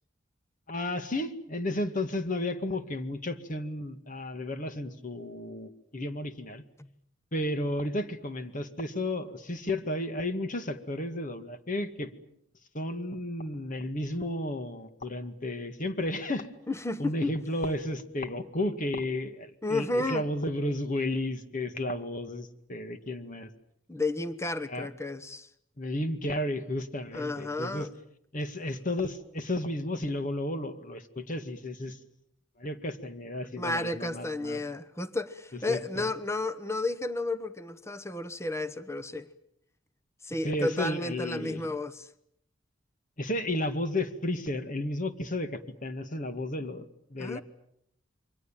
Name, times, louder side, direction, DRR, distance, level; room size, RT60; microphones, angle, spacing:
voice 1, 0.7-6.6 7.3-12.1 12.7-16.6 17.0-23.5 24.7-24.9 25.8-27.9 28.3-32.0 32.6-34.6 35.7-36.1 40.4-41.7 43.2-47.4, left 1 dB, 45° left, 2.1 m, -33 dB
voice 2, 16.7-17.3 19.6-20.2 23.9-25.5 27.1-27.9 33.6-39.3 40.2-42.1 47.2-47.4, left 2 dB, 15° left, 1.1 m, -32 dB
28.0 x 24.0 x 7.4 m
head